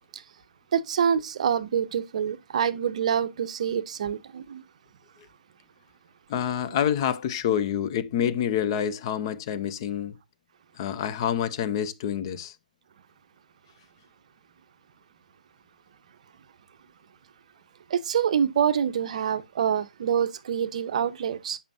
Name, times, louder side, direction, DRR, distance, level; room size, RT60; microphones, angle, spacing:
voice 1, 0.7-4.6 17.9-21.6, right 8 dB, 50° right, 0.6 m, -26 dB
voice 2, 6.3-10.2 10.8-12.5, left 9 dB, 35° left, 0.5 m, -27 dB
6.8 x 5.4 x 2.6 m
figure-of-eight pair, 140°, 5 cm